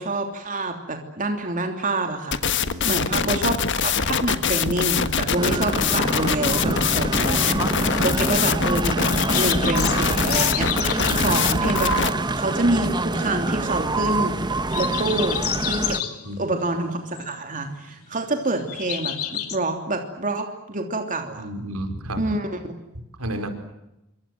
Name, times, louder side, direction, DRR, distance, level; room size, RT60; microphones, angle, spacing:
voice 1, 0.0-2.4 2.7-7.6 8.0-14.4 14.7-16.0 16.4-21.5 22.2-22.7, right 2 dB, 35° right, 4 dB, 3.1 m, -27 dB
sound 1, 2.3-12.1, left 6 dB, 55° left, 1.5 m, -23 dB
sound 2, 5.3-16.0, right 2 dB, 20° right, 1.1 m, -26 dB
sound 3, 8.7-19.6, left 10 dB, 80° left, 2.9 m, -34 dB
voice 2, 21.4-22.2 23.2-23.5, right 1 dB, 85° right, 7 dB, 4.8 m, -32 dB
28.0 x 25.0 x 7.8 m, 0.91 s
head